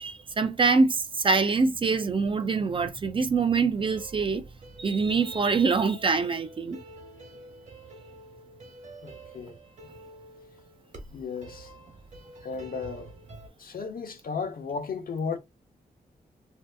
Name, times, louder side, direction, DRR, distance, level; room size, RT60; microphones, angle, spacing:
voice 1, 0.0-4.4 4.8-6.8, right 4 dB, 35° right, 0.4 m, -24 dB
sound 1, 3.9-13.5, right 1 dB, 50° right, 1.0 m, -48 dB
voice 2, 9.0-9.5 11.1-11.7 12.4-13.1 13.6-15.4, left 5 dB, 65° left, 0.8 m, -34 dB
2.7 x 2.3 x 3.3 m
wide cardioid pair, 145°, 16 cm